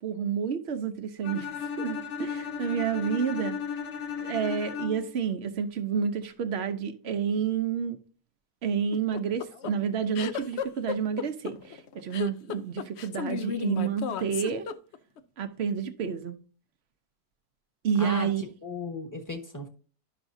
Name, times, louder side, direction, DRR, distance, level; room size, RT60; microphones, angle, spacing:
voice 1, 0.0-3.6 4.2-8.0 8.6-14.7 15.4-16.3 17.8-18.4, right 7 dB, 55° right, 0.8 m, -30 dB
Bowed string instrument, 1.2-5.2, left 7 dB, 55° left, 1.4 m, -35 dB
sound 1, 8.9-15.2, left 7 dB, 75° left, 0.6 m, -33 dB
voice 2, 18.0-19.7, left 3 dB, 15° left, 1.0 m, -36 dB
11.5 x 5.9 x 2.6 m
omnidirectional pair, 1.8 m